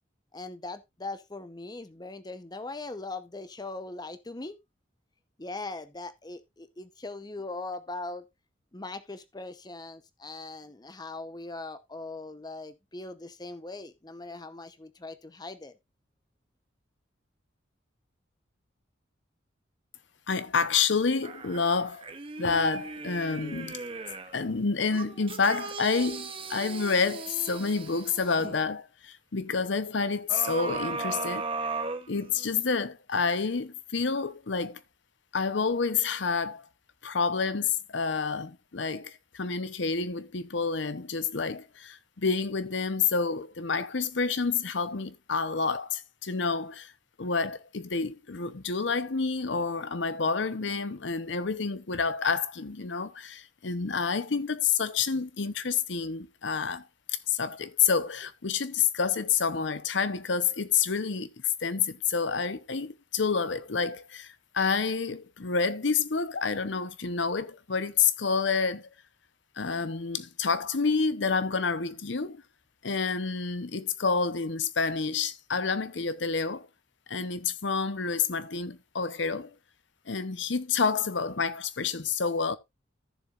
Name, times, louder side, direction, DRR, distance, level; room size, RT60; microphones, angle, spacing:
voice 1, 0.3-4.6 5.4-8.2 8.7-15.7, left 2 dB, 20° left, 0.8 m, -40 dB
voice 2, 20.3-22.1 22.4-23.8 24.3-31.4 32.1-34.8 35.3-36.7 37.0-46.9 47.2-68.9 69.6-72.4 72.8-76.7 77.1-79.5 80.1-82.6, left 5 dB, 70° left, 0.8 m, -29 dB
sound 1, 21.2-24.4 24.9-28.6 30.3-32.6 33.1-33.2, right 3 dB, 30° right, 0.9 m, -37 dB
14.5 x 6.9 x 2.5 m
head